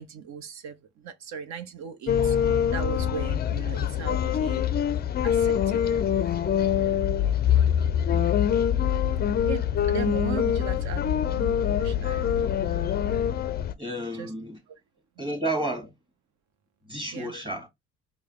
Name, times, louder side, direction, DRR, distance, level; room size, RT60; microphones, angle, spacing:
voice 1, 0.0-4.7 5.2-6.0 7.9-8.5 9.5-12.4 14.1-14.3 14.7-14.8 15.2-15.3 17.1-17.3, right 7 dB, 55° right, 0.6 m, -38 dB
sound 1, 2.1-13.7, left 9 dB, 30° left, 0.4 m, -24 dB
voice 2, 13.8-14.6 15.2-15.9 16.9-17.7, right 1 dB, 15° right, 1.5 m, -31 dB
4.7 x 2.1 x 2.9 m
hypercardioid pair, 60°, 33 cm